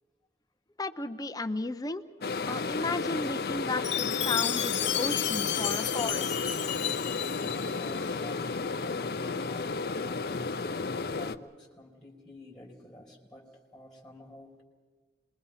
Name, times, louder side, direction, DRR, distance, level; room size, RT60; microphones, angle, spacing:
voice 1, 0.8-2.0 2.5-6.3, left 2 dB, 20° left, 8 dB, 0.7 m, -34 dB
sound 1, 2.2-11.4, left 4 dB, 55° left, 0.6 m, -33 dB
Chime, 3.8-8.0, left 11 dB, 80° left, 1.0 m, -32 dB
voice 2, 7.4-10.8 11.1-14.6, left 1 dB, 5° left, -1 dB, 3.0 m, -50 dB
27.0 x 21.5 x 5.7 m, 1.5 s
head